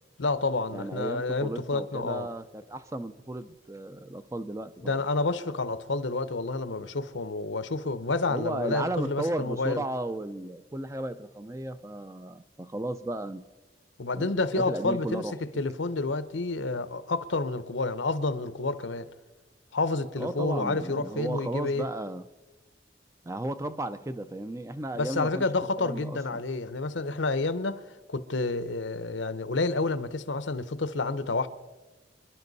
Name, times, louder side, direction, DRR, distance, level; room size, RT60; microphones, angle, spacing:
voice 1, 0.2-2.3 4.8-9.8 14.0-15.3 15.6-19.1 19.7-21.9 24.9-31.5, left 3 dB, 80° left, 0.8 m, -29 dB
voice 2, 0.7-5.0 8.3-13.4 14.2-15.6 20.2-22.2 23.2-25.4 25.8-26.4, right 1 dB, 15° right, 0.5 m, -34 dB
26.5 x 11.5 x 4.1 m
head